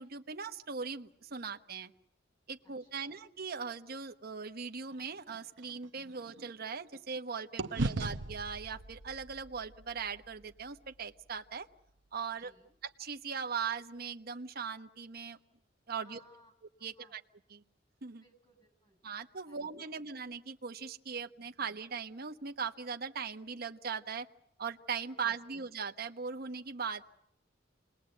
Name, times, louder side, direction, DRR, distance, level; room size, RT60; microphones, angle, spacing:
voice 1, 0.0-1.9 2.5-11.7 12.1-12.5 13.0-15.4 15.9-16.2 16.8-17.2 17.5-17.6 18.0-18.2 19.0-24.3 24.6-27.1, right 6 dB, 55° right, 6 dB, 1.1 m, -39 dB
voice 2, 2.6-3.2 12.3-12.8 16.0-17.2 18.2-19.0 19.5-20.0 25.1-25.6, equal, 25° left, 6 dB, 7.5 m, -64 dB
sound 1, 4.9-7.2 7.6-11.8, right 2 dB, 70° right, 0.9 m, -40 dB
28.5 x 20.5 x 7.9 m, 0.77 s
head